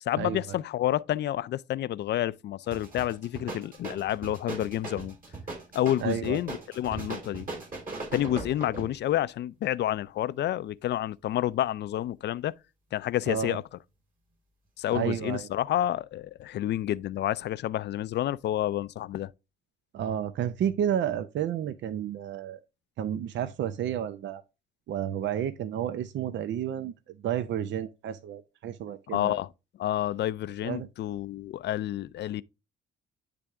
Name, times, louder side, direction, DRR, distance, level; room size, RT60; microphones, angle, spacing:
voice 1, 0.0-5.2 5.7-7.5 8.1-12.5 12.9-13.8 14.8-19.3 29.1-29.5 29.8-32.4, left 13 dB, 60° left, 0.4 m, -29 dB
sound 1, 2.7-9.0, right 3 dB, 45° right, 3.4 m, -39 dB
voice 2, 6.0-6.4 13.3-13.6 14.9-15.5 19.9-22.6 23.0-24.4 24.9-26.9 27.2-29.4 30.6-30.9, right 9 dB, 65° right, 0.6 m, -31 dB
9.9 x 3.4 x 3.5 m
cardioid pair, 90°, 20 cm